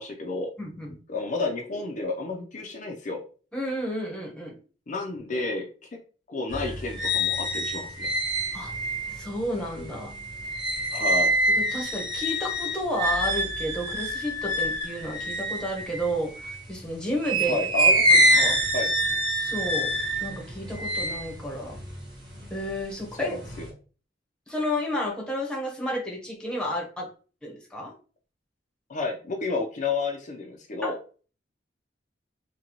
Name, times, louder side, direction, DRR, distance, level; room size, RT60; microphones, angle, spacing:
voice 1, 0.0-0.5 1.1-3.2 4.9-5.7 6.3-8.1 10.9-11.3 17.5-18.2 18.7-18.9 23.1-23.7 28.9-31.0, left 3 dB, 45° left, 1 dB, 0.5 m, -31 dB
voice 2, 0.6-1.0 3.5-4.5 8.5-8.7 9.1-10.1 11.6-17.6 18.1-18.6 19.3-19.9 20.2-21.8 22.5-23.4 24.5-27.1 27.4-27.9 30.8-30.9, equal, 5° left, -1 dB, 0.9 m, -31 dB
sound 1, 6.5-16.7 17.2-22.7 23.1-23.7, equal, 25° right, 1.4 m, -26 dB
3.9 x 2.2 x 2.9 m, 0.38 s
head